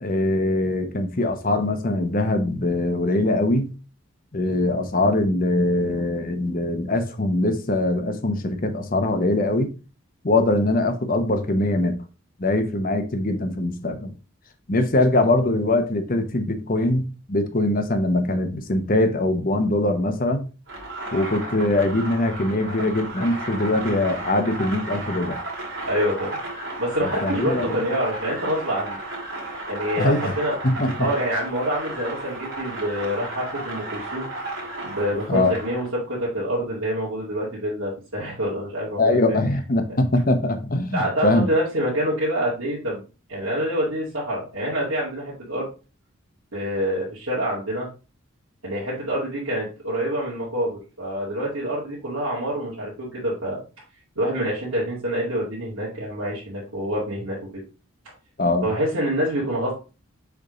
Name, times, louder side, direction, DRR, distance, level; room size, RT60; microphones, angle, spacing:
voice 1, 0.0-3.7 4.3-9.7 10.2-12.0 12.4-14.1 14.7-20.5 21.1-25.4 27.0-27.8 30.0-30.4 30.6-31.1 35.3-35.5 39.0-41.5 58.4-58.7, left 2 dB, 40° left, 0.9 m, -22 dB
sound 1, 20.7-35.9, right 2 dB, 65° right, 2.4 m, -34 dB
voice 2, 25.9-26.4 26.8-29.0 29.7-30.5 31.0-34.3 34.8-39.4 40.9-43.0 43.3-45.7 46.5-47.9 48.6-53.6 54.2-57.5 58.6-59.7, equal, 80° right, 2.2 m, -26 dB
6.8 x 3.6 x 3.9 m
head